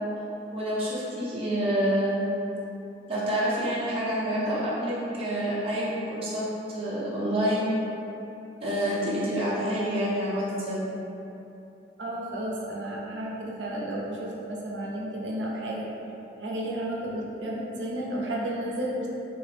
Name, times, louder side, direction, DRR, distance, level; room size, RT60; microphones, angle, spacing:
voice 1, 0.5-2.2 3.1-7.7 8.6-10.8, equal, 35° right, -9 dB, 0.6 m, -28 dB
voice 2, 12.0-15.9 16.4-19.1, right 1 dB, 80° right, -3 dB, 0.5 m, -32 dB
3.4 x 2.0 x 3.2 m, 2.9 s
head